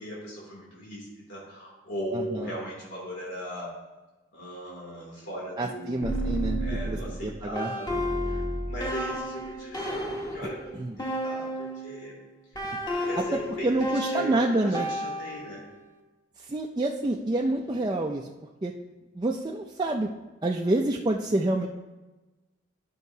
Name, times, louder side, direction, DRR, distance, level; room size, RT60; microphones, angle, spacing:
voice 1, 0.0-3.8 4.3-6.1 6.6-12.2 12.5-15.6 17.5-17.9, equal, 80° left, -5 dB, 2.8 m, -39 dB
voice 2, 2.1-2.5 5.6-7.0 7.2-7.7 10.8-10.9 12.7-12.8 13.2-14.9 16.5-18.3 18.6-18.7 19.1-20.1 20.4-21.7, right 2 dB, 25° right, 0 dB, 0.4 m, -27 dB
sound 1, 6.0-12.0 12.5-15.8, equal, 20° left, 1.2 m, -32 dB
12.5 x 5.6 x 2.7 m, 1.1 s
head